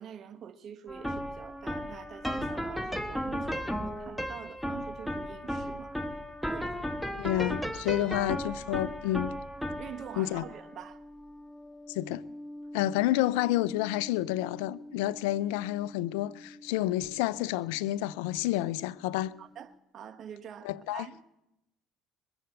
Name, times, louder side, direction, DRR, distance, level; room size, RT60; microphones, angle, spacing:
voice 1, 0.0-6.0 6.5-6.9 7.9-8.1 9.8-11.0 19.4-21.2, right 8 dB, 50° right, 1.1 m, -46 dB
sound 1, 0.9-18.1, equal, ahead, 1.3 m, -37 dB
voice 2, 7.2-9.3 10.2-10.4 11.9-12.2 12.7-19.3 20.6-21.1, left 15 dB, 85° left, 0.5 m, -29 dB
21.0 x 7.9 x 7.9 m
supercardioid pair, 80°, 0 cm